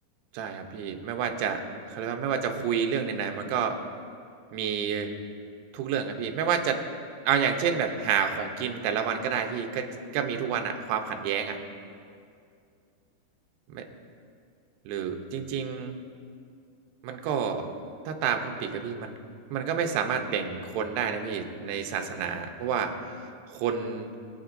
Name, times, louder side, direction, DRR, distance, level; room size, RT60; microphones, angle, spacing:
voice 1, 0.3-3.8 4.5-5.1 5.7-6.8 7.3-11.6 13.7-13.8 14.9-16.0 17.0-17.7 18.1-19.1 19.5-23.3 23.5-24.1, right 7 dB, 75° right, 5 dB, 2.8 m, -29 dB
22.5 x 8.9 x 2.6 m, 2.4 s
omnidirectional pair, 5.1 m